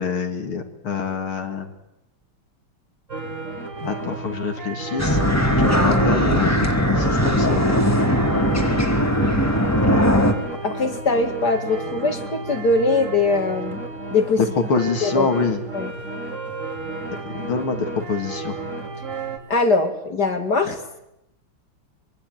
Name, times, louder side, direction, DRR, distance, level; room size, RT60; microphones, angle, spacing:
voice 1, 0.0-1.7 3.8-7.8 10.4-10.6 14.4-15.6 17.3-18.5, left 5 dB, 80° left, 5 dB, 3.2 m, -26 dB
sound 1, 3.1-19.4, right 3 dB, 35° right, 3.7 m, -32 dB
sound 2, 5.0-10.3, equal, 5° left, 2.4 m, -19 dB
voice 2, 10.6-13.8 14.1-14.4 15.0-15.3 15.7-15.9 19.5-20.8, left 3 dB, 50° left, 6 dB, 2.6 m, -21 dB
24.5 x 24.0 x 9.4 m, 0.84 s
omnidirectional pair, 2.3 m